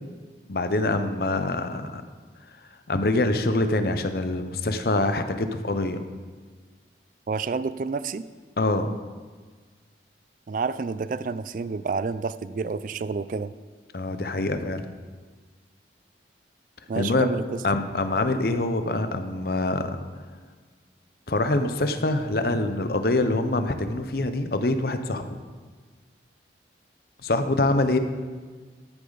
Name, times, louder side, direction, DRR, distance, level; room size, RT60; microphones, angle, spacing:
voice 1, 0.5-2.0 2.9-6.0 8.6-8.9 13.9-14.9 16.9-17.3 17.6-19.9 21.3-25.3 27.2-28.0, left 2 dB, 55° left, 9 dB, 0.7 m, -25 dB
voice 2, 7.3-8.3 10.5-13.5 16.9-17.6, right 4 dB, 45° right, 15 dB, 0.3 m, -29 dB
13.0 x 8.5 x 4.0 m, 1.5 s
head